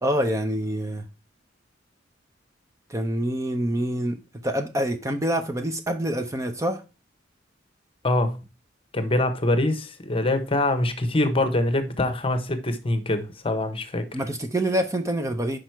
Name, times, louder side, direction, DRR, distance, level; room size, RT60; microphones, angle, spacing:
voice 1, 0.0-1.1 2.9-6.8 14.1-15.6, right 1 dB, 15° right, 0.6 m, -26 dB
voice 2, 8.0-8.4 8.9-14.2, left 1 dB, 30° left, 0.9 m, -24 dB
6.0 x 5.0 x 4.5 m
head